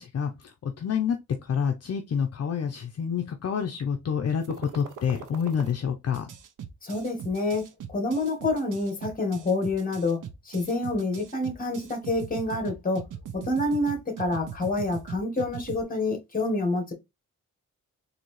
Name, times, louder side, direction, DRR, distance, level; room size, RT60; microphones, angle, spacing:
voice 1, 0.0-6.3, left 7 dB, 55° left, 0.6 m, -28 dB
sound 1, 4.4-5.7 6.1-15.8, right 9 dB, 90° right, 0.7 m, -40 dB
voice 2, 6.8-7.6 7.9-13.0 13.3-16.9, left 2 dB, 30° left, 1.4 m, -27 dB
4.0 x 2.7 x 3.0 m
wide cardioid pair, 115°, 30 cm